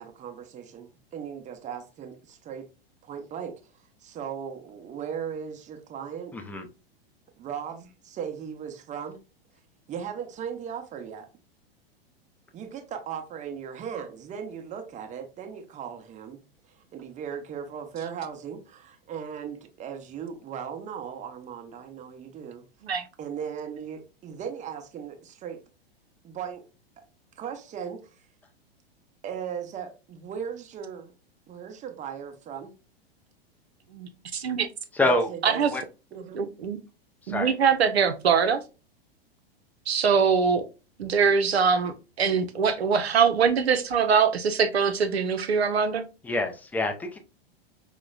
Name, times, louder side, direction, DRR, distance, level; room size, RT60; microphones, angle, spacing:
voice 1, 0.0-2.7 3.0-6.4 7.4-9.2 9.9-11.3 12.5-16.4 16.7-22.6 23.2-25.6 26.2-26.6 27.4-28.2 29.2-31.1 31.5-32.7 35.0-35.6 36.1-36.4, right 7 dB, 25° right, 0.8 m, -37 dB
voice 2, 6.3-6.7 35.0-35.3 35.7-35.8 37.3-37.5 46.2-47.2, left 2 dB, 5° left, 0.3 m, -26 dB
voice 3, 33.9-34.7 35.4-35.7 36.1-36.8 37.3-38.6 39.9-40.6 41.0-46.0, right 6 dB, 85° right, 0.6 m, -23 dB
4.7 x 2.2 x 2.2 m
hypercardioid pair, 100°, 31 cm